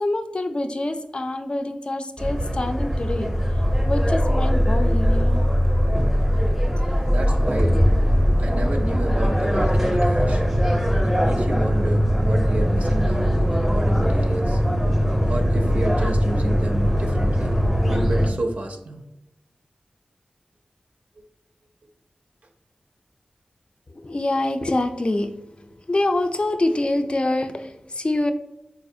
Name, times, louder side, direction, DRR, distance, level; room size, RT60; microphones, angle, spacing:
voice 1, 0.0-3.3 3.8-5.5 7.7-7.8 24.0-25.3 25.9-28.3, left 2 dB, 40° left, 7 dB, 0.3 m, -25 dB
sound 1, 2.2-18.3, equal, 10° right, 0.6 m, -20 dB
voice 2, 7.1-7.8 8.4-10.4 11.2-14.6 15.2-17.6 17.9-19.0, right 2 dB, 65° right, 4 dB, 0.4 m, -30 dB
4.2 x 2.4 x 2.6 m, 0.88 s
wide cardioid pair, 70°, 3 cm